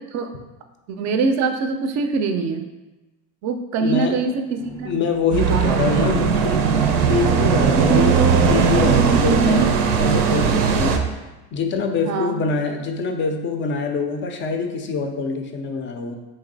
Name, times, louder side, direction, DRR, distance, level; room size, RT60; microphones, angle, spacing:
voice 1, 0.9-2.7 3.4-4.9 5.5-5.8 12.0-12.4, right 4 dB, 40° right, 7 dB, 0.4 m, -23 dB
voice 2, 3.8-4.2 4.8-6.6 7.1-8.2 8.5-11.0 11.5-16.2, left 4 dB, 30° left, 5 dB, 0.4 m, -24 dB
sound 1, 4.6-9.8, right 3 dB, 10° right, 0.7 m, -30 dB
sound 2, 5.3-11.0, right 6 dB, 85° right, 0.6 m, -18 dB
3.2 x 2.7 x 3.8 m, 1.1 s
supercardioid pair, 100°, 44 cm